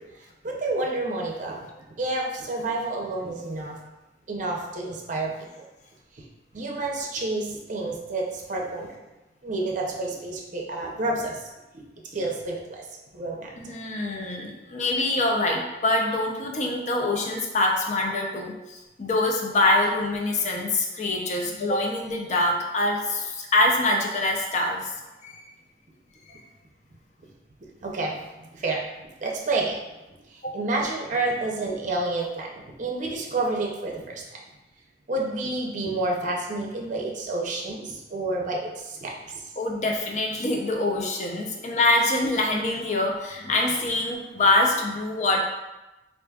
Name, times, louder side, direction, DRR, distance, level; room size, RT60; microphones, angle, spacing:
voice 1, 0.4-1.7 2.0-3.8 4.3-5.5 6.5-8.9 9.4-11.4 11.7-11.8 12.1-12.9 13.1-13.7 26.3-26.4 27.8-28.2 28.5-28.8 29.2-29.8 30.5-34.2 35.1-39.4, right 2 dB, 45° right, -1 dB, 0.6 m, -29 dB
voice 2, 13.6-24.9 25.2-25.4 30.4-30.5 39.6-45.4, left 2 dB, 40° left, 1 dB, 0.5 m, -24 dB
4.7 x 2.5 x 2.3 m, 1.0 s
head